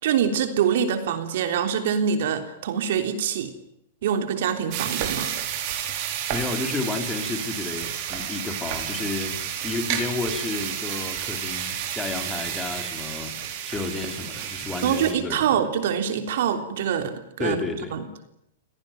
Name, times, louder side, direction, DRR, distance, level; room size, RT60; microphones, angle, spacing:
voice 1, 0.0-3.5 4.0-5.3 14.8-17.6 17.9-18.0, right 8 dB, 65° right, 8 dB, 3.4 m, -25 dB
sound 1, 4.7-15.1, right 10 dB, 45° right, 4.8 m, -31 dB
voice 2, 6.3-15.5 17.4-17.9, left 3 dB, 10° left, 6 dB, 3.7 m, -31 dB
26.5 x 18.0 x 9.3 m, 0.82 s
hypercardioid pair, 150°, 0 cm